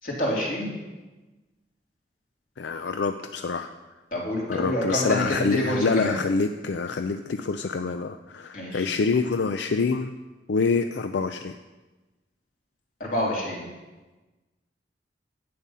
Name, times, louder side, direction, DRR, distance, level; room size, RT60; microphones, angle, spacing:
voice 1, 0.0-0.7 4.1-6.2 8.5-8.9 13.0-13.6, left 1 dB, 50° left, -4 dB, 3.2 m, -27 dB
voice 2, 2.6-3.7 4.5-10.1 10.5-11.6, left 4 dB, 80° left, 8 dB, 0.5 m, -26 dB
11.0 x 8.7 x 5.5 m, 1.2 s
head